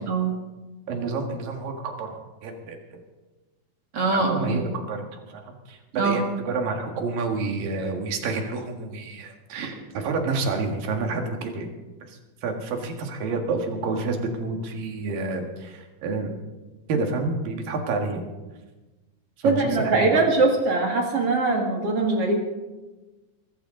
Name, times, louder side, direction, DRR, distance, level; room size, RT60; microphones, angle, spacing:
voice 1, 0.1-0.4 3.9-4.6 6.0-6.2 9.6-9.7 19.4-22.4, right 3 dB, 50° right, 1 dB, 2.5 m, -22 dB
voice 2, 0.9-3.0 4.1-11.7 12.1-16.3 16.9-18.3 19.4-20.2, right 3 dB, 85° right, 3 dB, 3.5 m, -29 dB
23.0 x 13.0 x 3.8 m, 1.2 s
omnidirectional pair, 3.9 m